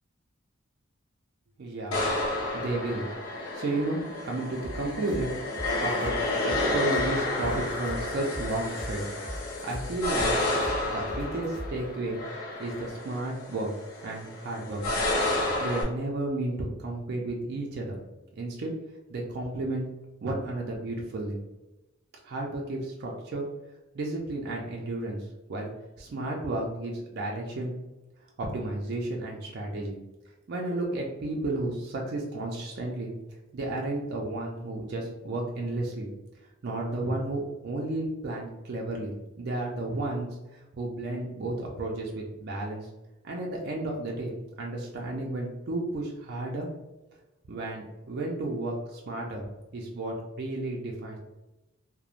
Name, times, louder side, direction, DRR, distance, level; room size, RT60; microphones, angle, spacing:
voice 1, 1.6-2.0 2.5-3.0 3.5-5.4 5.8-6.1 6.5-9.0 9.6-10.3 10.9-12.2 12.6-13.7 14.0-14.8 15.6-18.0 18.3-18.7 19.1-19.9 20.2-21.4 22.2-23.4 23.9-25.2 25.5-25.7 26.0-27.7 28.4-30.0 30.5-33.1 33.5-36.1 36.6-39.1 39.4-42.9 43.2-46.7 47.5-49.4 49.7-51.2, right 2 dB, 50° right, -1 dB, 0.4 m, -32 dB
sound 1, 1.9-15.8, left 2 dB, 85° left, 0.7 m, -31 dB
sound 2, 4.6-11.8, equal, 25° left, 0.7 m, -39 dB
2.9 x 2.0 x 2.4 m, 1.0 s
head